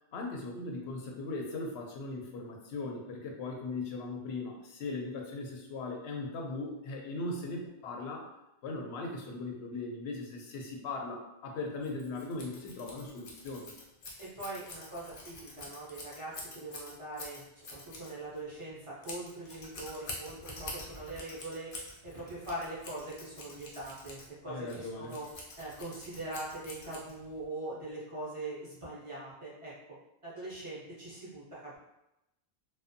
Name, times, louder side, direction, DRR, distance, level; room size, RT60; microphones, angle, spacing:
voice 1, 0.1-8.3 8.6-13.7 24.5-25.2, left 3 dB, 85° left, 1 dB, 0.8 m, -39 dB
Scissors, 11.8-27.4, left 2 dB, 55° left, 0.7 m, -47 dB
voice 2, 14.2-21.7 22.0-25.3 25.6-29.7 30.2-31.8, right 2 dB, 35° right, -7 dB, 0.6 m, -42 dB
2.5 x 2.2 x 2.5 m, 0.91 s
omnidirectional pair, 1.0 m